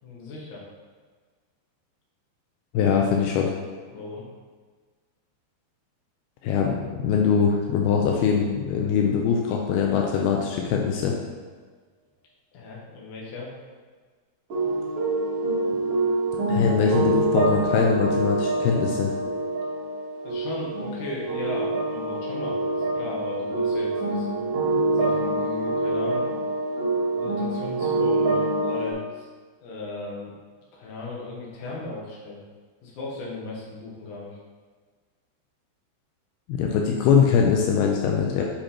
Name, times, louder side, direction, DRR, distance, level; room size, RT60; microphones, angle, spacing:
voice 1, 0.0-0.6 3.9-4.2 12.5-13.5 20.2-24.5 24.9-26.4 27.1-29.3 29.6-30.3 30.7-32.4 32.8-34.4, left 2 dB, 55° left, -4 dB, 2.4 m, -36 dB
voice 2, 2.7-3.5 6.4-11.2 16.5-19.1 36.5-38.4, left 6 dB, 85° left, 0 dB, 2.3 m, -22 dB
sound 1, 14.5-28.9, right 2 dB, 45° right, 2.4 m, -26 dB
7.3 x 5.2 x 4.4 m, 1.5 s
omnidirectional pair, 5.2 m